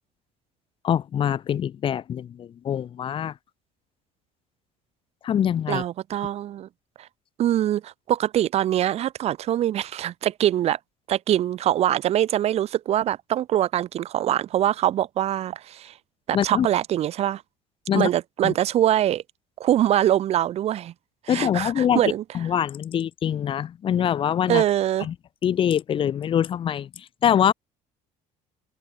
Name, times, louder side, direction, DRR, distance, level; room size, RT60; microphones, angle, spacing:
voice 1, 0.8-3.3 5.2-5.8 16.3-16.7 17.9-18.1 18.4-18.5 21.3-22.0 22.3-24.6 25.0-25.1 25.4-27.5, left 9 dB, 35° left, 4.0 m, -24 dB
voice 2, 5.7-6.7 7.4-10.8 11.1-15.9 16.3-17.4 17.9-19.2 19.6-20.9 21.3-22.2 24.5-25.1, right 12 dB, 45° right, 3.4 m, -23 dB
cardioid pair, 145°, 15 cm